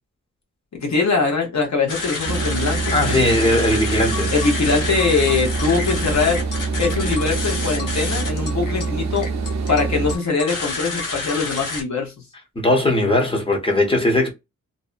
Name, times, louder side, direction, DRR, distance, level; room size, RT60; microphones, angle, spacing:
voice 1, 0.7-3.3 4.3-6.4 6.8-9.3 9.7-12.1, left 4 dB, 60° left, 1.0 m, -22 dB
sound 1, 1.9-11.8, left 3 dB, 85° left, 0.8 m, -29 dB
sound 2, 2.2-10.2, right 4 dB, 60° right, 0.5 m, -25 dB
voice 2, 2.9-4.3 12.6-14.3, left 1 dB, 15° left, 0.7 m, -19 dB
2.6 x 2.1 x 2.4 m
wide cardioid pair, 180°, 31 cm